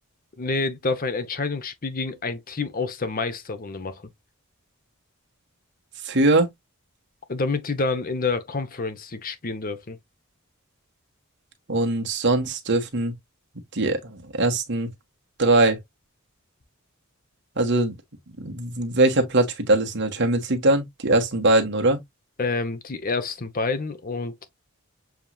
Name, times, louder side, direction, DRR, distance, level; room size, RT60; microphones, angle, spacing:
voice 1, 0.4-4.1 7.3-10.0 22.4-24.5, left 3 dB, 40° left, 0.8 m, -28 dB
voice 2, 6.0-6.5 11.7-13.1 13.7-14.9 15.4-15.8 17.6-17.9 18.4-22.0, right 2 dB, 55° right, 1.3 m, -21 dB
7.1 x 3.0 x 2.3 m
head